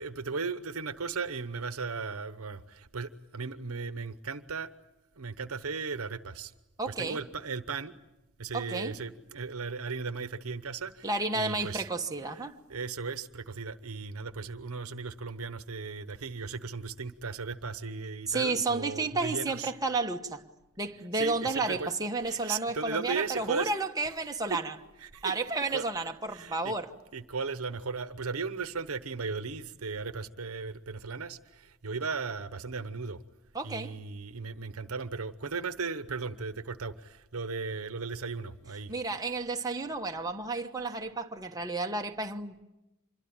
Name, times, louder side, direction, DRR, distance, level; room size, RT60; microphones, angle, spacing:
voice 1, 0.0-4.7 5.2-6.5 6.9-8.0 8.4-11.1 11.3-11.8 12.7-19.7 21.1-21.9 22.2-23.7 24.5-24.6 25.0-25.3 25.7-25.8 26.3-26.7 27.1-33.2 33.6-38.9, right 4 dB, 80° right, 1.0 m, -36 dB
voice 2, 6.8-7.2 8.5-9.0 11.0-12.6 18.3-20.4 20.8-24.7 25.2-26.9 33.5-34.0 38.9-42.6, right 3 dB, 15° right, 1.2 m, -32 dB
26.0 x 22.5 x 8.9 m
head